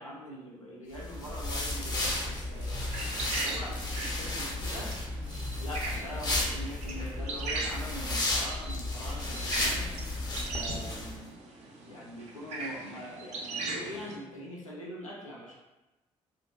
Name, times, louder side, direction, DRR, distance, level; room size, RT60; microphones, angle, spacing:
voice 1, 0.0-5.0 5.6-9.9 10.5-11.4 11.9-15.5, equal, 90° left, -5 dB, 0.4 m, -43 dB
sound 1, 0.9-11.1, left 2 dB, 25° left, 0.5 m, -33 dB
sound 2, 1.6-14.2, right 2 dB, 45° right, 0.4 m, -40 dB
2.6 x 2.1 x 2.3 m, 1.0 s
figure-of-eight pair, 45°, 16 cm